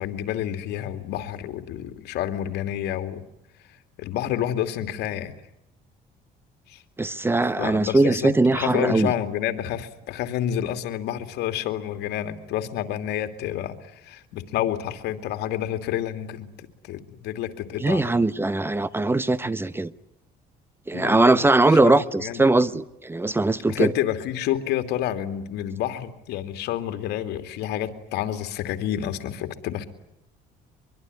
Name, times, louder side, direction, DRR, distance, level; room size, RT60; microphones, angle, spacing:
voice 1, 0.0-3.2 4.0-5.3 6.7-6.8 7.6-13.7 14.0-18.2 20.9-22.5 23.7-29.9, left 11 dB, 80° left, 2.7 m, -29 dB
voice 2, 7.0-9.1 17.8-19.9 20.9-23.9, right 2 dB, 15° right, 1.1 m, -20 dB
24.0 x 23.5 x 9.7 m
cardioid pair, 110°, 17 cm